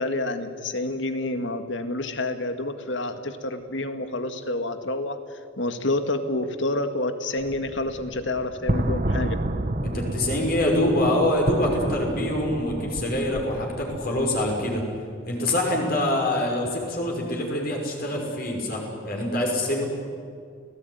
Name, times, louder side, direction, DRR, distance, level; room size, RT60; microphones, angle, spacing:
voice 1, 0.0-9.4, left 2 dB, 70° left, 8 dB, 2.0 m, -28 dB
sound 1, 7.4-14.8, right 1 dB, 45° right, 1.3 m, -30 dB
voice 2, 9.8-14.8 15.3-19.8, left 1 dB, 50° left, 0 dB, 5.8 m, -25 dB
30.0 x 18.0 x 9.5 m, 2.3 s
head